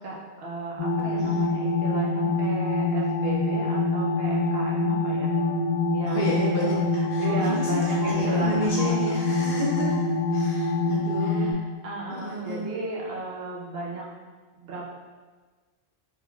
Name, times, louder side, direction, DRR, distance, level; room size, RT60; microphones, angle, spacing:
voice 1, 0.0-5.4 5.9-6.8 7.2-9.1 11.2-14.1 14.6-14.9, right 2 dB, 70° right, -3 dB, 0.8 m, -35 dB
sound 1, 0.8-11.5, left 2 dB, 40° left, 0.5 m, -25 dB
voice 2, 1.2-1.5 6.1-11.6 12.1-12.6, equal, 55° left, -5 dB, 0.9 m, -31 dB
sound 2, 3.9-10.8, right 3 dB, 35° right, 0.8 m, -44 dB
3.6 x 2.9 x 2.3 m, 1.4 s
omnidirectional pair, 1.1 m